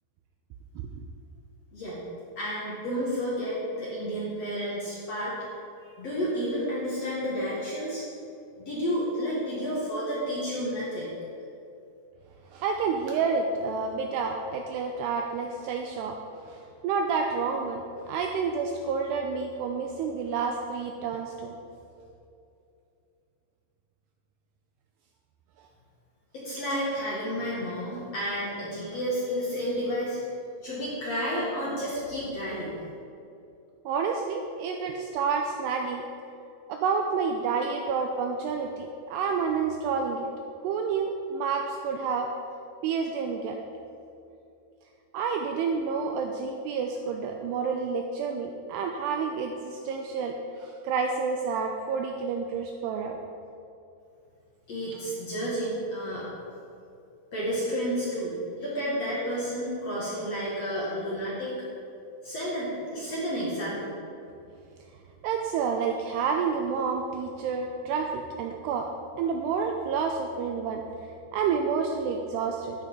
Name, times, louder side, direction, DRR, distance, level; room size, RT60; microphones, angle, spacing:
voice 1, 1.7-2.0 2.4-5.3 6.0-8.1 8.6-11.1 26.3-30.2 30.6-32.8 54.7-56.3 57.3-61.5 62.2-63.9, equal, 50° left, -7 dB, 2.0 m, -31 dB
voice 2, 12.5-16.2 16.5-21.6 33.9-36.0 36.7-40.3 40.6-42.3 42.8-43.6 45.1-53.2 65.2-68.9 69.2-70.8 71.3-72.7, right 5 dB, 90° right, 3 dB, 2.4 m, -29 dB
12.0 x 10.0 x 3.8 m, 2.7 s
omnidirectional pair, 5.4 m